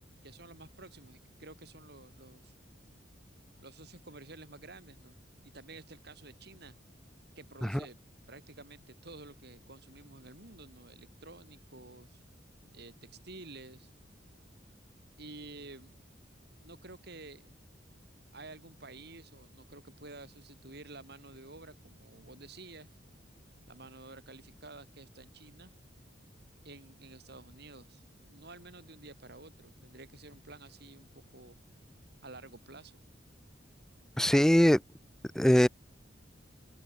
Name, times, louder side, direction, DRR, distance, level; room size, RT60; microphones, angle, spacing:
voice 1, 0.2-2.5 3.6-5.1 5.4-6.7 7.4-8.0 8.3-12.2 12.7-13.9 15.2-16.0 16.6-17.5 18.3-22.9 23.7-25.7 26.6-31.6 32.2-33.0, right 2 dB, 60° right, 5.4 m, -51 dB
voice 2, 34.2-34.8 35.4-35.7, equal, 5° left, 0.4 m, -21 dB
open air
head